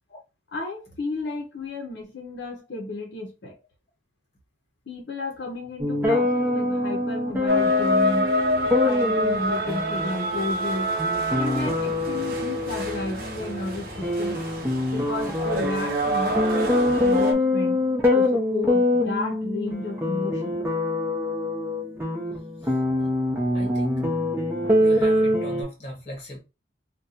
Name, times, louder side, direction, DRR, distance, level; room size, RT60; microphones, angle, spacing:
voice 1, 0.5-3.5 4.9-8.3 8.8-10.9 11.3-14.4 14.9-17.9 18.1-20.6, left 2 dB, 70° left, 0.7 m, -33 dB
sound 1, 5.8-25.6, left 1 dB, 10° right, 0.7 m, -25 dB
sound 2, 7.5-17.3, equal, 50° right, 0.7 m, -27 dB
voice 2, 23.5-23.9 24.8-26.4, equal, 35° left, 1.2 m, -38 dB
2.5 x 2.3 x 4.0 m
head